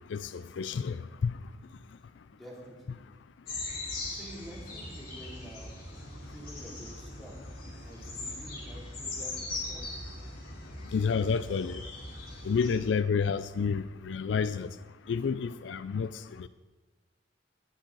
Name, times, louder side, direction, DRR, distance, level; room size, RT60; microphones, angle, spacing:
voice 1, 0.1-1.0 1.2-1.3 10.9-11.8 12.5-14.7 15.1-16.1 16.4-16.5, left 5 dB, 75° left, 0.4 m, -29 dB
voice 2, 2.3-3.0 3.5-3.7 4.1-5.7 6.3-7.3 7.7-9.9, equal, ahead, 3.1 m, -48 dB
sound 1, 3.5-12.8, left 2 dB, 55° left, 3.9 m, -40 dB
19.0 x 7.2 x 4.0 m
head